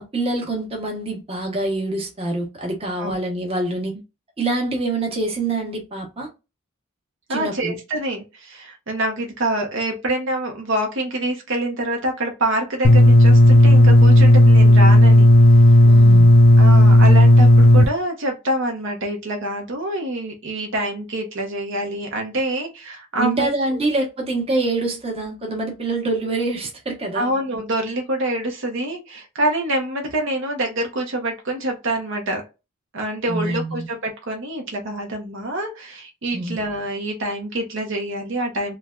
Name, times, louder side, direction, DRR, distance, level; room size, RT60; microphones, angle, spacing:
voice 1, 0.0-3.9 4.4-6.3 7.3-7.7 15.8-16.3 23.2-27.3 33.3-33.9 36.3-36.6, right 2 dB, 30° right, 1.0 m, -25 dB
voice 2, 7.3-15.3 16.6-23.8 27.1-32.4 32.9-38.8, right 1 dB, 65° right, 0.7 m, -26 dB
sound 1, 12.8-17.8, left 1 dB, 50° left, 0.4 m, -10 dB
3.2 x 2.2 x 2.3 m
head